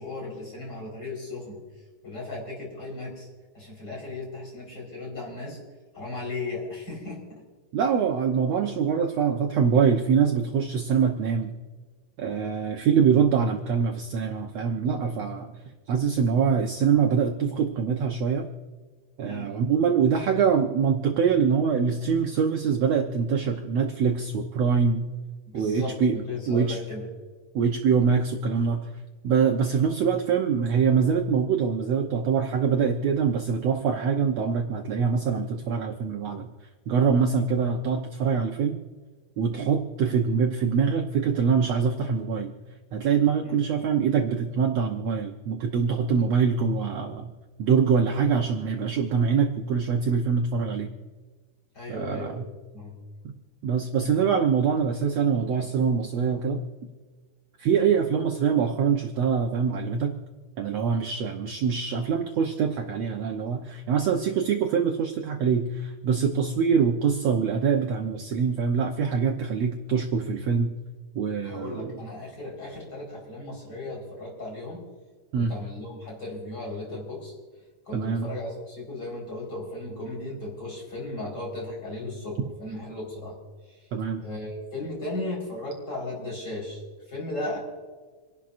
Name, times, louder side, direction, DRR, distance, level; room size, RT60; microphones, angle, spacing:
voice 1, 0.0-1.6 2.0-3.3 3.5-5.6 5.9-7.4 19.2-19.5 25.5-27.0 43.4-43.6 51.7-52.5 52.7-53.0 71.4-74.8 75.4-77.3 77.8-83.4 84.2-86.8 87.1-87.6, left 2 dB, 25° left, -2 dB, 5.0 m, -36 dB
voice 2, 7.7-11.5 12.2-15.5 15.9-18.5 19.2-25.1 25.5-26.2 26.5-26.8 27.5-28.9 29.2-36.5 36.9-38.8 39.4-42.5 42.9-47.3 47.6-50.9 51.9-52.5 53.6-56.6 57.6-60.1 60.6-70.7 71.1-72.0 75.3-75.5 77.9-78.3 83.9-84.2, right 6 dB, 80° right, 3 dB, 1.5 m, -24 dB
28.0 x 11.5 x 2.6 m, 1.4 s
omnidirectional pair, 4.2 m